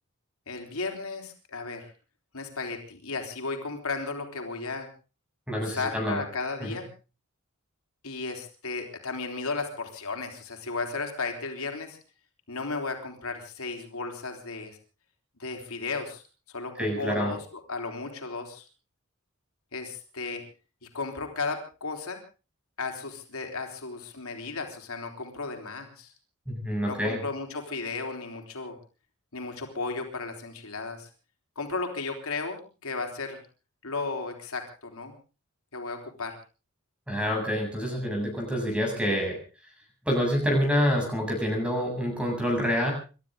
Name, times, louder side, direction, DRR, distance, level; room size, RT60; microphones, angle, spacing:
voice 1, 0.5-1.9 2.3-4.9 5.5-6.9 8.0-12.0 12.5-14.8 15.4-16.2 16.5-17.4 17.7-18.6 19.7-20.4 20.8-22.2 22.8-26.1 26.9-28.8 29.3-31.1 31.6-33.4 33.8-35.1 35.7-36.4, left 4 dB, 90° left, 3 dB, 3.9 m, -34 dB
voice 2, 5.5-6.2 6.6-6.8 16.8-17.3 26.5-27.2 37.1-39.4 40.0-42.9, equal, 5° right, 1 dB, 7.4 m, -27 dB
28.5 x 13.0 x 3.8 m, 0.34 s
head